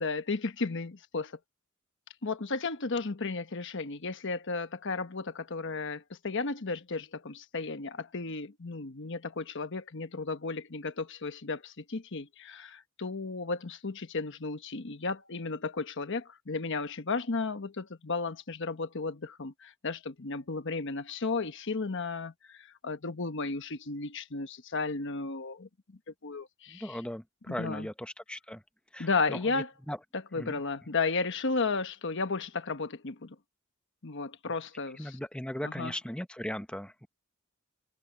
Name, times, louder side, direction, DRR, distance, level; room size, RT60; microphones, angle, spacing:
voice 1, 0.0-1.3 2.2-25.7 26.2-26.8 27.5-27.9 29.0-29.7 30.3-33.3 34.0-35.0 35.6-35.9, left 4 dB, 60° left, 1.2 m, -34 dB
voice 2, 26.7-28.6 28.9-30.0 30.3-30.6 34.9-37.1, left 1 dB, 5° left, 1.0 m, -38 dB
head